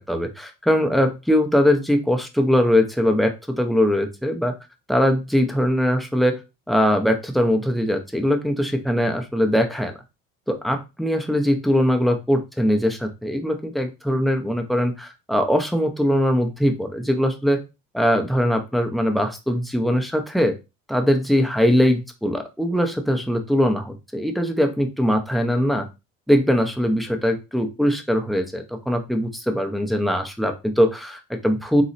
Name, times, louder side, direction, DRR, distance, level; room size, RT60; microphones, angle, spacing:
voice 1, 0.0-4.5 4.9-6.4 6.7-9.9 10.5-17.6 17.9-20.5 20.9-25.9 26.3-31.8, equal, ahead, 5 dB, 0.5 m, -21 dB
4.1 x 3.0 x 3.9 m, 0.26 s
cardioid pair, 175°, 21 cm